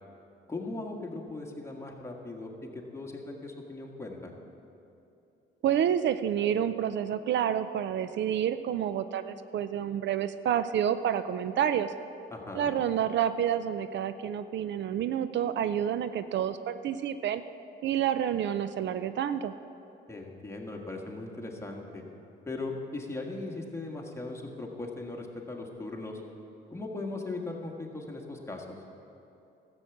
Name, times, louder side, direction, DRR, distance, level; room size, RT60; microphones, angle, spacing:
voice 1, 0.5-4.3 12.3-12.7 20.1-22.0 22.5-26.2 26.7-28.8, left 2 dB, 15° left, 0 dB, 1.8 m, -38 dB
voice 2, 5.6-11.9 12.5-17.4 17.8-19.5, right 9 dB, 65° right, 12 dB, 0.5 m, -29 dB
13.0 x 8.0 x 7.2 m, 2.8 s
cardioid pair, 90°, 20 cm